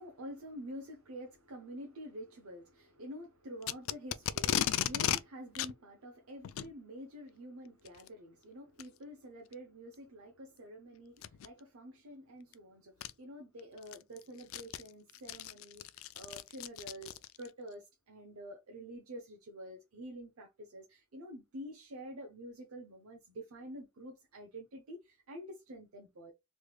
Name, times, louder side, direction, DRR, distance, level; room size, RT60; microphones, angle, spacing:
voice 1, 0.0-26.3, equal, 90° right, 0.7 m, -48 dB
Packing tape duct tape, 3.6-5.2 5.6-5.7 6.4-6.7 7.9-8.1 8.8-8.9 9.5-9.6 11.2-11.5 12.5-12.6 13.0-13.1 13.6-17.5, left 11 dB, 70° left, 0.3 m, -35 dB
3.3 x 3.2 x 2.3 m
head